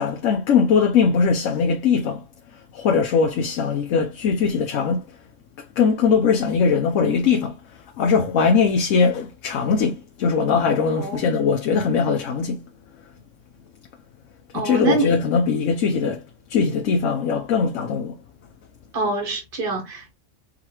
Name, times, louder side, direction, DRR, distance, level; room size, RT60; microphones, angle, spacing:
voice 1, 0.0-2.2 2.7-5.0 5.8-7.5 8.0-12.6 14.5-16.2 16.5-18.1, left 5 dB, 90° left, 1.1 m, -20 dB
voice 2, 14.5-15.1 18.9-20.1, right 3 dB, 50° right, 1.3 m, -25 dB
3.9 x 3.8 x 2.9 m
omnidirectional pair, 1.3 m